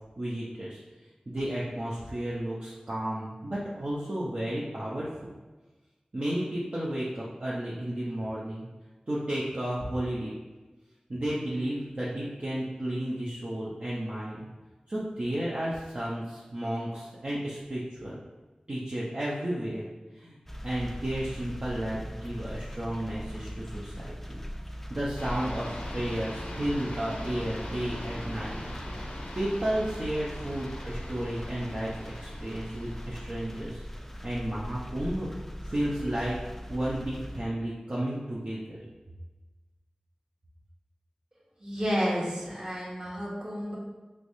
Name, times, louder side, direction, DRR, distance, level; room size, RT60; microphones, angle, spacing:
voice 1, 0.2-0.8 1.3-5.3 6.1-8.7 9.1-10.3 11.1-14.4 14.9-18.2 18.7-19.9 20.2-20.4 20.6-24.4 24.9-28.7 29.4-31.9 32.2-33.8 34.2-35.3 35.6-36.4 36.7-38.8, right 1 dB, 50° right, -7 dB, 0.6 m, -32 dB
sound 1, 20.5-37.4, equal, 10° left, 0.3 m, -40 dB
sound 2, 25.2-33.7, left 1 dB, 80° left, 0.5 m, -42 dB
voice 2, 41.6-43.8, equal, 35° right, -5 dB, 1.1 m, -31 dB
3.3 x 3.1 x 2.6 m, 1.2 s
wide cardioid pair, 40°, 2 cm